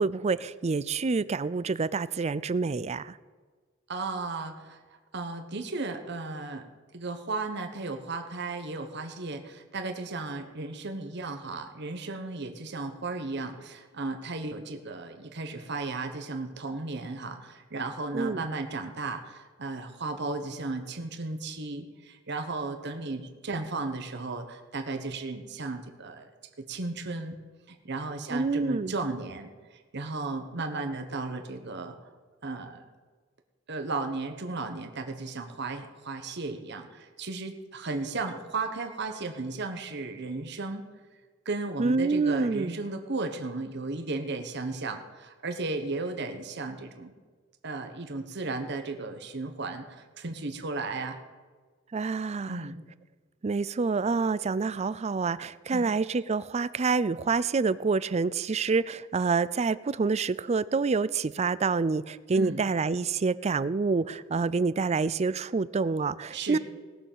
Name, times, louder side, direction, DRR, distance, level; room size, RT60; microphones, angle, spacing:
voice 1, 0.0-3.1 18.1-18.4 28.3-28.9 41.8-42.8 51.9-52.7 53.4-66.6, right 4 dB, 35° right, 18 dB, 0.4 m, -27 dB
voice 2, 3.9-4.8 5.1-6.6 6.9-26.3 26.6-27.4 27.7-29.5 29.9-32.0 32.4-32.8 33.7-40.9 41.4-47.1 47.6-51.2 52.5-52.8 55.7-55.9 62.3-62.6 66.3-66.6, right 3 dB, 60° right, 5 dB, 1.2 m, -35 dB
18.5 x 6.9 x 7.4 m, 1.4 s
head